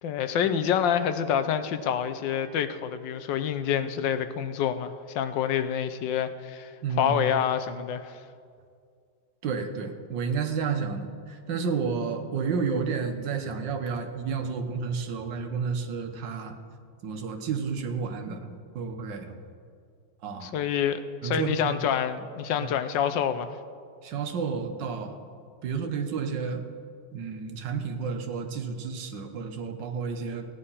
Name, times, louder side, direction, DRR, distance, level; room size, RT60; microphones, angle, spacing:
voice 1, 0.0-8.2 20.4-23.5, left 8 dB, 70° left, 10 dB, 1.3 m, -27 dB
voice 2, 6.8-7.3 9.4-16.6 17.0-18.5 18.7-19.4 20.2-20.5 21.2-21.8 22.6-22.7 24.0-25.2 25.6-26.6 27.1-30.5, right 5 dB, 65° right, 5 dB, 1.6 m, -31 dB
15.0 x 9.8 x 5.6 m, 2.2 s
omnidirectional pair, 2.2 m